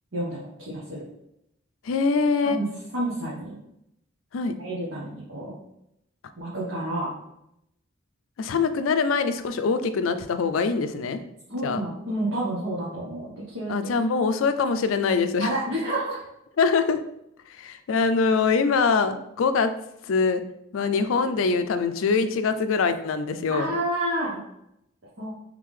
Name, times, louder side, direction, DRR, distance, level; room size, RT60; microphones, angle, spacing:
voice 1, 0.1-1.0 2.4-2.7 2.9-3.6 4.6-5.6 6.4-7.1 11.5-13.7 15.4-16.2 23.5-24.4 25.2-25.3, right 1 dB, 65° right, -7 dB, 1.1 m, -29 dB
voice 2, 1.9-2.6 4.3-4.5 8.4-11.2 11.6-11.8 13.7-15.5 16.6-17.0 17.6-19.7 20.1-20.4 20.7-23.7, left 4 dB, 75° left, 10 dB, 0.4 m, -23 dB
3.7 x 3.4 x 3.2 m, 0.80 s
head